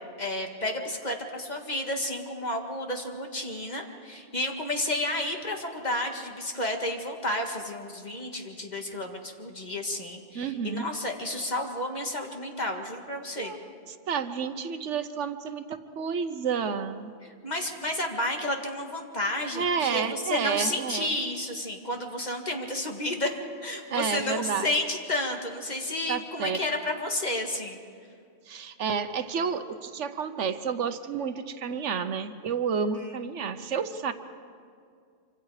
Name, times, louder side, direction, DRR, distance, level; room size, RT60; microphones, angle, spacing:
voice 1, 0.2-13.5 17.2-23.3 23.6-27.8 32.9-33.1 33.6-33.7, left 1 dB, 40° left, 2 dB, 1.9 m, -31 dB
voice 2, 10.3-10.9 13.4-17.1 19.5-21.1 23.9-24.7 26.1-26.6 28.5-34.1, right 6 dB, 90° right, 10 dB, 1.3 m, -30 dB
26.0 x 25.5 x 4.9 m, 2.2 s
omnidirectional pair, 1.2 m